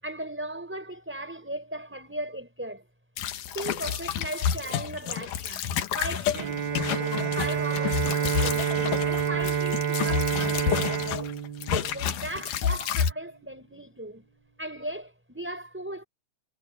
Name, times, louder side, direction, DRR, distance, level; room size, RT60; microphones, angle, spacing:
voice 1, 0.0-2.8 3.5-5.7 5.9-11.3 11.7-14.2 14.6-16.0, right 1 dB, 5° right, 4.6 m, -37 dB
sound 1, 3.2-11.3 11.6-13.1, left 9 dB, 85° left, 2.9 m, -30 dB
Bowed string instrument, 6.3-12.4, right 8 dB, 50° right, 1.7 m, -28 dB
omnidirectional pair, 3.6 m